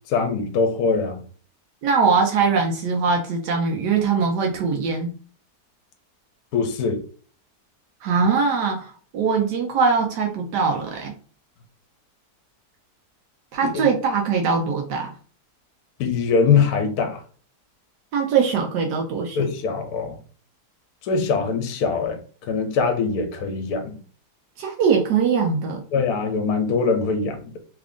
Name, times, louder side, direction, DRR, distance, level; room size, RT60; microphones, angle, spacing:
voice 1, 0.1-1.2 6.5-7.0 13.6-13.7 16.0-17.2 19.4-20.1 21.0-22.2 22.5-24.0 25.9-27.6, left 5 dB, 70° left, 1.1 m, -22 dB
voice 2, 1.8-5.1 8.0-11.1 13.5-15.1 18.1-19.4 24.6-25.8, right 5 dB, 85° right, 1.3 m, -21 dB
3.3 x 2.4 x 3.5 m
omnidirectional pair, 1.8 m